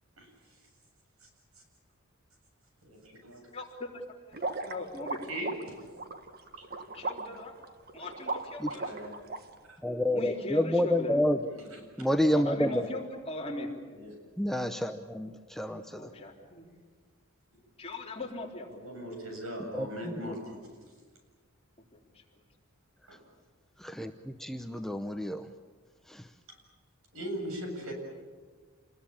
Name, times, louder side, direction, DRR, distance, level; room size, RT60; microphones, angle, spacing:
voice 1, 2.8-3.4 5.3-5.7 6.6-6.7 8.6-9.2 9.7-9.8 11.4-11.8 13.9-14.1 18.7-20.6 23.1-23.2 26.5-26.6 27.1-27.9, equal, 75° right, 3 dB, 7.6 m, -40 dB
voice 2, 3.5-4.0 4.4-5.2 6.9-7.5 7.9-8.9 10.1-11.2 12.3-13.8 16.0-16.7 17.8-18.7 21.9-22.2, left 2 dB, 30° left, -1 dB, 3.6 m, -39 dB
sound 1, 4.3-9.4, right 3 dB, 45° right, 1.5 m, -37 dB
voice 3, 9.8-11.4 12.0-12.9 14.4-16.1 19.6-19.9 20.3-20.4 23.8-25.5 26.1-26.3, left 1 dB, ahead, 6 dB, 0.7 m, -29 dB
28.0 x 20.5 x 8.7 m, 1.5 s
head